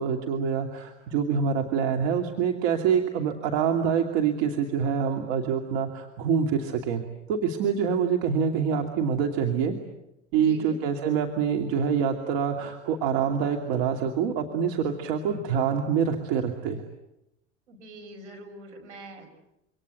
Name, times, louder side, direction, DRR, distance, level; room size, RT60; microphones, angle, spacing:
voice 1, 0.0-7.0 7.3-9.7 10.3-16.8, right 7 dB, 65° right, 3 dB, 2.7 m, -26 dB
voice 2, 10.3-10.8 17.7-19.4, right 1 dB, 80° right, 3 dB, 5.9 m, -44 dB
27.0 x 25.5 x 8.0 m, 0.86 s
hypercardioid pair, 80°, 35 cm